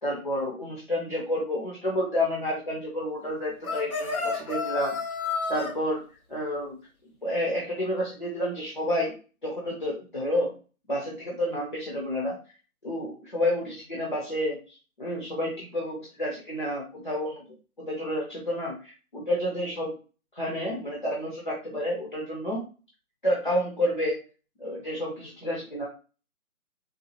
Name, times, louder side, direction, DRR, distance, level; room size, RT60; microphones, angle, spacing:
voice 1, 0.0-5.0 5.5-6.0 6.3-6.8 7.2-9.1 9.4-10.5 10.9-12.3 12.8-14.6 15.0-17.4 17.8-19.9 20.4-22.6 23.2-24.2 24.6-25.9, left 1 dB, 35° left, -3 dB, 0.7 m, -29 dB
sound 1, 3.6-5.7, left 4 dB, 70° left, 1.0 m, -30 dB
3.9 x 2.4 x 2.7 m, 0.35 s
figure-of-eight pair, 155°, 45 cm